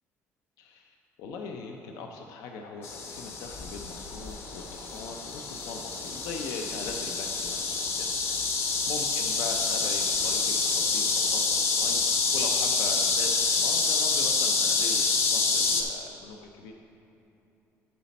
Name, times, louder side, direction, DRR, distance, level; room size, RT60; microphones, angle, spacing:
voice 1, 0.6-16.7, left 4 dB, 85° left, 3 dB, 0.5 m, -40 dB
sound 1, 2.8-15.8, left 4 dB, 45° left, 0.8 m, -27 dB
11.0 x 4.2 x 4.1 m, 2.9 s
cardioid pair, 135°, 6 cm